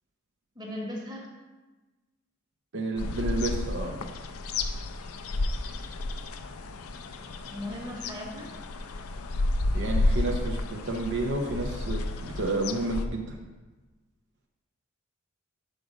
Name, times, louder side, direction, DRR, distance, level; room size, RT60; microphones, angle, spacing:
voice 1, 0.5-1.3 7.5-8.5, left 1 dB, 20° right, -2 dB, 1.3 m, -37 dB
voice 2, 2.7-4.0 9.7-13.4, right 2 dB, 60° right, 0 dB, 0.7 m, -31 dB
sound 1, 3.0-13.1, left 2 dB, 80° left, 0.5 m, -31 dB
5.2 x 4.9 x 6.2 m, 1.2 s
head